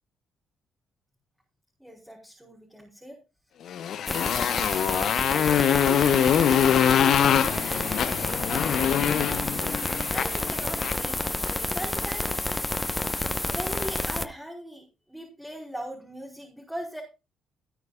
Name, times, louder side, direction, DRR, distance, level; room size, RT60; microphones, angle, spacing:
voice 1, 1.8-3.2 5.3-9.6 10.1-12.4 13.4-17.0, equal, 5° right, -2 dB, 4.9 m, -40 dB
Motorcycle, 3.7-11.1, left 9 dB, 60° left, 0.8 m, -24 dB
sound 1, 4.1-14.3, left 2 dB, 15° left, 1.1 m, -30 dB
17.5 x 9.5 x 2.5 m, 0.29 s
hypercardioid pair, 45°, 0 cm